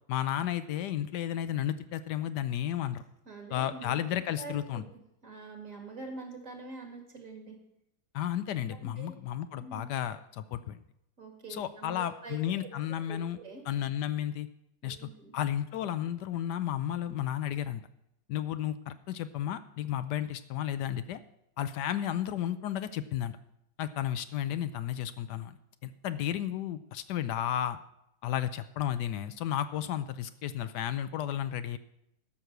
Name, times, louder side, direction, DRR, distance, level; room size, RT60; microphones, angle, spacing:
voice 1, 0.1-3.0 3.5-4.8 8.1-10.8 11.5-13.4 13.7-14.5 14.8-17.8 18.3-21.2 21.6-23.4 23.8-25.5 25.8-27.8 28.2-31.8, left 11 dB, 75° left, 12 dB, 1.2 m, -33 dB
voice 2, 3.3-4.0 4.3-7.6 9.0-9.1 9.5-9.8 11.2-12.6 13.1-13.6 14.8-15.3, right 3 dB, 50° right, 2 dB, 2.6 m, -45 dB
13.0 x 6.2 x 6.7 m, 0.81 s
omnidirectional pair, 1.9 m